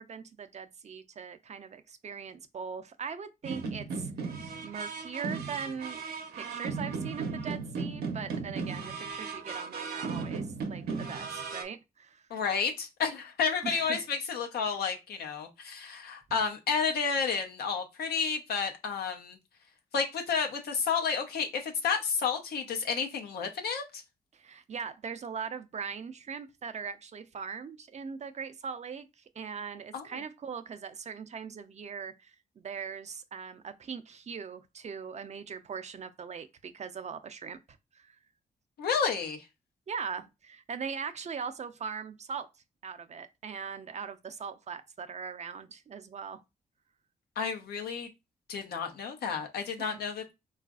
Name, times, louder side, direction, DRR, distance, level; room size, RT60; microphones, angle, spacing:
voice 1, 0.0-4.3 4.6-6.0 6.3-12.2 13.6-14.1 24.3-29.1 29.3-37.6 37.9-38.2 39.9-42.5 42.8-46.4 49.8-50.0, right 6 dB, 45° right, 0.5 m, -40 dB
sound 1, 3.4-11.6, right 4 dB, 80° right, 0.7 m, -36 dB
voice 2, 12.3-19.4 19.9-24.0 29.9-30.0 38.8-39.4 47.4-48.1 48.5-50.3, left 6 dB, 80° left, 0.7 m, -31 dB
3.9 x 2.4 x 2.3 m
cardioid pair, 65°, 16 cm